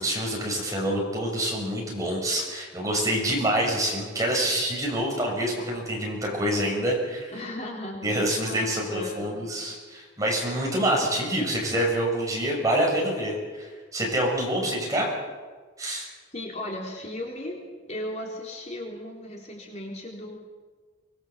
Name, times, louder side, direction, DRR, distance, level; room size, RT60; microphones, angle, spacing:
voice 1, 0.0-7.3 8.0-13.7 13.9-15.1 15.8-16.1, right 1 dB, 15° right, -2 dB, 6.6 m, -26 dB
voice 2, 7.3-9.6 16.3-17.6 17.9-20.4, left 1 dB, 35° left, -1 dB, 3.8 m, -36 dB
25.0 x 21.0 x 7.4 m, 1.4 s
head